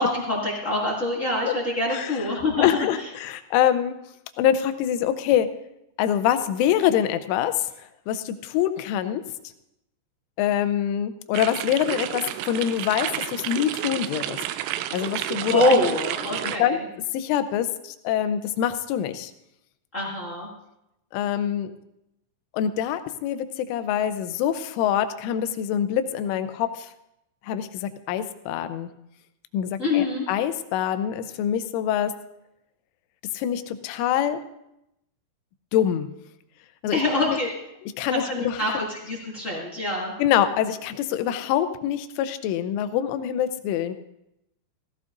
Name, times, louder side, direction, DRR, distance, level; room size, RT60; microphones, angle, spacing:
voice 1, 0.0-2.7 15.5-16.8 19.9-20.5 29.8-30.3 36.9-37.5 38.1-40.1, left 2 dB, 40° left, -4 dB, 1.0 m, -25 dB
voice 2, 2.6-3.9 4.4-5.5 6.0-9.2 10.4-14.4 14.9-15.8 16.4-16.8 17.1-19.3 21.1-21.7 22.5-26.9 27.4-28.9 29.5-32.1 33.3-34.4 35.7-36.1 36.8-37.4 38.0-38.6 40.2-43.9, left 10 dB, 85° left, 10 dB, 3.2 m, -25 dB
sound 1, 11.3-16.6, right 13 dB, 85° right, 3.1 m, -31 dB
17.0 x 15.5 x 2.6 m, 0.84 s
omnidirectional pair, 5.6 m